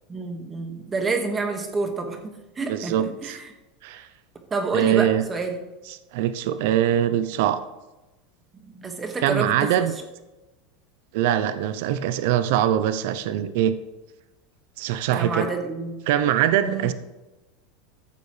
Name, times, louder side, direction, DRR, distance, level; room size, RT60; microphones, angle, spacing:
voice 1, 0.1-3.5 4.5-5.6 8.6-9.9 15.1-16.0 16.6-16.9, right 3 dB, 20° right, 4 dB, 1.8 m, -29 dB
voice 2, 2.7-3.4 3.8-4.1 4.7-5.2 6.1-7.6 9.2-9.9 11.1-13.7 14.8-15.5 16.1-16.9, right 10 dB, 70° right, 12 dB, 0.6 m, -22 dB
14.5 x 6.8 x 3.3 m, 1.1 s
supercardioid pair, 120°, 0 cm